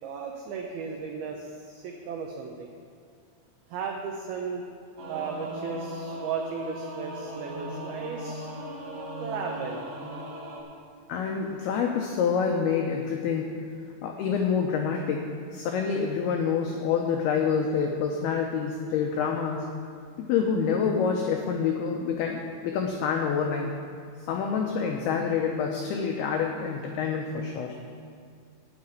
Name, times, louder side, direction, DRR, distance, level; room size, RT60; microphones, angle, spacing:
voice 1, 0.0-2.7 3.7-4.6 5.1-8.5 9.1-9.9, right 5 dB, 90° right, 1 dB, 2.1 m, -35 dB
Singing / Musical instrument, 5.0-10.6, equal, 60° right, 3.5 m, -38 dB
voice 2, 11.1-13.5 14.0-15.2 15.5-19.6 20.2-23.7 24.3-27.8, left 6 dB, 90° left, 2 dB, 2.2 m, -27 dB
9.9 x 6.6 x 8.7 m, 2.3 s
omnidirectional pair, 5.5 m